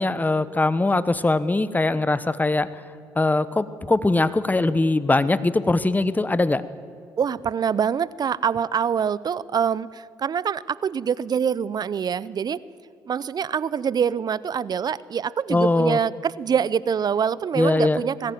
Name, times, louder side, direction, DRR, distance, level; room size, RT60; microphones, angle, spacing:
voice 1, 0.0-2.8 3.1-6.6 15.5-16.0 17.6-18.0, left 2 dB, 20° left, 15 dB, 1.1 m, -21 dB
voice 2, 7.2-12.6 13.1-18.3, right 7 dB, 45° right, 20 dB, 0.7 m, -25 dB
20.5 x 15.0 x 9.3 m, 2.5 s
hypercardioid pair, 50°, 9 cm